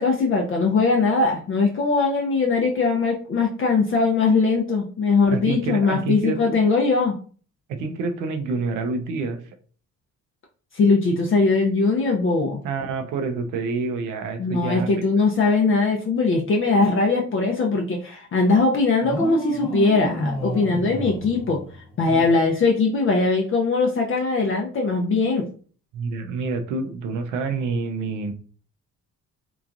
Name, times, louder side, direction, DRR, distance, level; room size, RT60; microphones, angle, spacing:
voice 1, 0.0-7.2 10.7-12.6 14.4-25.5, left 3 dB, 45° left, 0 dB, 0.5 m, -21 dB
voice 2, 5.3-6.6 7.7-9.4 12.6-14.9 22.1-22.3 25.9-28.3, right 4 dB, 85° right, 6 dB, 0.5 m, -27 dB
sound 1, 19.0-22.2, right 1 dB, 20° left, 0.9 m, -30 dB
2.9 x 2.4 x 2.4 m, 0.42 s
cardioid pair, 90°, 30 cm